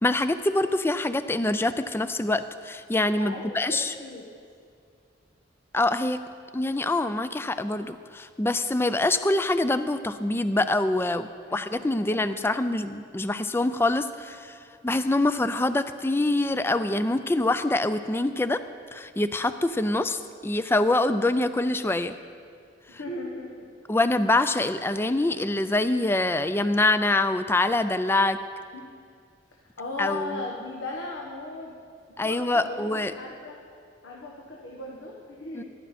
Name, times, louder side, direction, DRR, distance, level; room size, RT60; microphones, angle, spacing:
voice 1, 0.0-3.9 5.7-6.2 6.5-14.6 14.8-18.6 18.9-22.1 23.9-28.4 30.0-30.4 32.2-33.1 35.5-35.6, left 2 dB, 10° left, 12 dB, 0.3 m, -25 dB
voice 2, 3.2-4.2 11.5-11.7 11.9-12.1 12.4-12.5 22.9-23.7 24.6-24.7 28.7-28.9 29.8-31.7 32.2-33.6 34.0-35.6, left 2 dB, 85° left, -2 dB, 1.2 m, -37 dB
14.0 x 11.5 x 4.2 m, 2.2 s
head